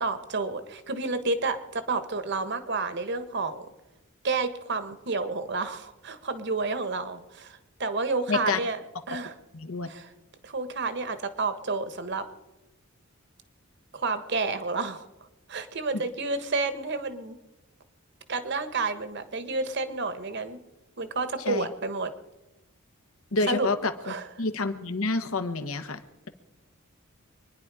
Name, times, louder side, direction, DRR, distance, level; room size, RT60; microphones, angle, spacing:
voice 1, 0.0-3.7 4.2-8.8 9.1-9.3 9.9-10.1 10.4-12.2 13.9-15.1 15.5-17.3 18.3-20.6 21.0-22.1 23.4-23.7 24.0-24.3, right 3 dB, 55° right, 10 dB, 1.4 m, -30 dB
voice 2, 8.3-8.6 9.5-9.9 21.4-21.7 23.3-26.0, left 3 dB, 80° left, 9 dB, 1.3 m, -28 dB
25.5 x 10.5 x 4.9 m, 1.0 s
head